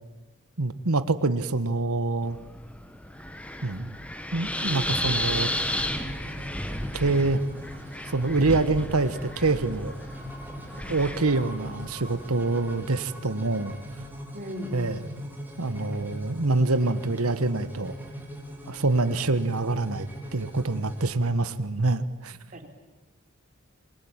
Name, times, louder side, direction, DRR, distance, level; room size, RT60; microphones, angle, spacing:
voice 1, 0.6-2.4 3.6-4.0 4.3-5.5 6.9-7.4 8.1-9.9 10.9-13.8 14.7-15.0 15.6-17.9 18.7-22.4, right 3 dB, 85° right, 12 dB, 1.4 m, -26 dB
Wind, 2.2-12.3, left 1 dB, 5° left, 1.7 m, -33 dB
sound 1, 4.5-21.1, equal, 10° right, 4.8 m, -41 dB
voice 2, 14.3-15.0 22.5-22.7, equal, 40° right, 4 dB, 3.8 m, -37 dB
28.5 x 23.0 x 9.0 m, 1.1 s
head